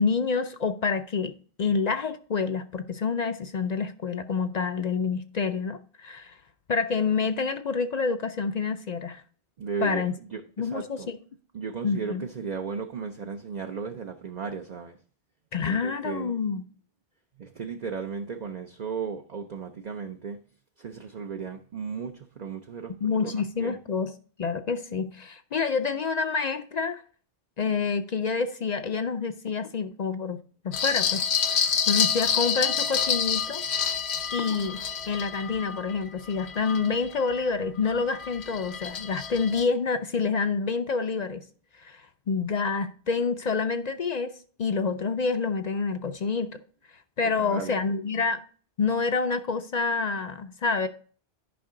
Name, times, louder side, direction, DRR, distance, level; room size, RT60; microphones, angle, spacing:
voice 1, 0.0-6.4 6.7-9.2 9.8-10.1 10.6-11.2 11.8-12.3 15.5-16.6 23.0-24.1 24.4-27.0 27.6-33.6 34.3-34.8 35.1-41.4 41.8-46.6 47.2-48.4 48.8-50.9, left 5 dB, 50° left, 0.6 m, -28 dB
voice 2, 9.6-10.0 10.3-11.1 11.5-15.0 15.6-16.4 17.4-20.4 20.8-23.3 23.6-23.8 47.4-47.8, right 6 dB, 45° right, 0.7 m, -35 dB
sound 1, 30.7-37.4 37.9-39.6, left 7 dB, 85° left, 1.1 m, -28 dB
10.5 x 5.4 x 3.8 m
omnidirectional pair, 1.1 m